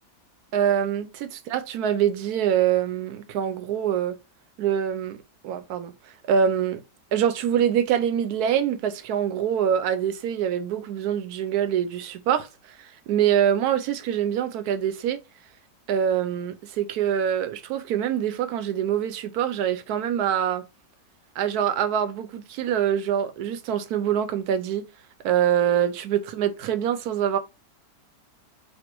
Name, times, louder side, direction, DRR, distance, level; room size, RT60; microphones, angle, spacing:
voice 1, 0.5-4.2 4.6-5.9 6.3-6.8 7.1-12.5 12.8-15.2 15.9-20.7 21.4-24.9 25.2-27.4, right 9 dB, 70° right, 1.1 m, -24 dB
4.4 x 2.5 x 4.4 m
omnidirectional pair, 1.8 m